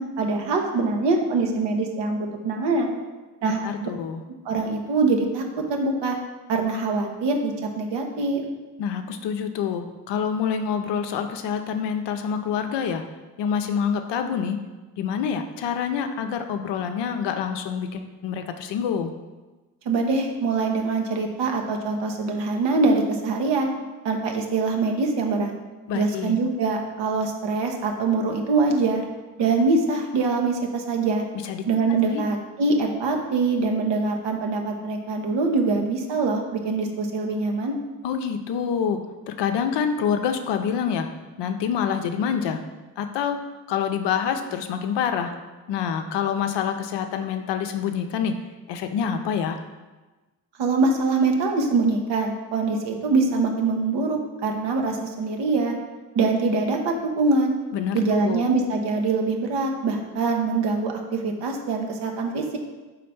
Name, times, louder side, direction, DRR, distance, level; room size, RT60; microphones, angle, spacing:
voice 1, 0.0-2.9 3.4-3.9 4.4-5.4 5.7-6.1 6.5-8.4 19.9-23.7 24.0-25.5 25.9-29.0 29.4-31.2 31.7-37.7 50.6-55.8 56.1-57.5 57.9-62.6, right 3 dB, 60° right, 2 dB, 1.1 m, -24 dB
voice 2, 3.6-4.2 8.8-13.1 13.4-14.6 15.0-19.1 25.9-26.4 31.3-31.7 32.1-32.2 38.0-41.1 41.4-42.6 43.0-43.4 43.7-45.4 45.7-48.4 48.7-49.6 57.7-58.5, left 7 dB, 65° left, 6 dB, 0.7 m, -26 dB
4.2 x 4.0 x 5.6 m, 1.2 s
hypercardioid pair, 45°, 47 cm